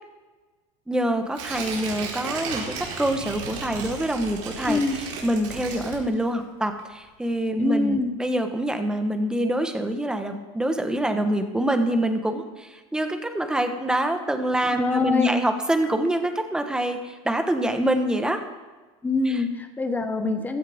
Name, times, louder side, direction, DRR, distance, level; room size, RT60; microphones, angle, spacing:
voice 1, 0.9-4.8 5.2-18.4 19.2-19.4, right 1 dB, 5° right, 6 dB, 1.1 m, -25 dB
Tearing, 1.3-6.4 6.8-6.9, right 5 dB, 80° right, 4.2 m, -34 dB
voice 2, 4.7-5.0 7.6-8.1 14.7-15.4 19.0-20.6, left 3 dB, 10° left, 7 dB, 1.1 m, -24 dB
16.0 x 14.0 x 3.5 m, 1.3 s
supercardioid pair, 145°, 16 cm